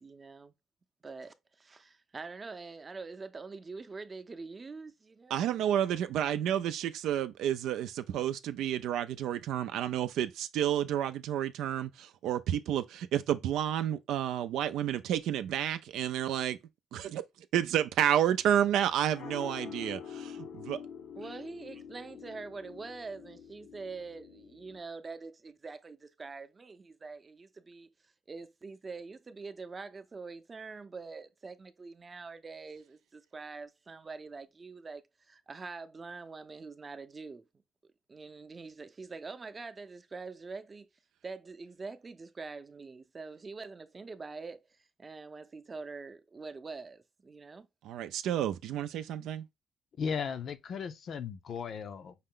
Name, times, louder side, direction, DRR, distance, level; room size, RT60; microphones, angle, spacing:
voice 1, 0.0-0.5 1.0-5.5 21.2-27.9 28.3-37.4 38.1-40.9 41.2-44.7 45.0-47.7, right 4 dB, 30° right, 0.6 m, -44 dB
voice 2, 5.3-16.6 16.9-17.2 17.5-20.8 47.8-49.5, right 10 dB, 85° right, 0.4 m, -30 dB
sound 1, 18.4-24.8, left 7 dB, 80° left, 0.9 m, -46 dB
voice 3, 50.0-52.1, left 6 dB, 60° left, 0.6 m, -36 dB
5.6 x 2.1 x 3.7 m
cardioid pair, 90°, 0 cm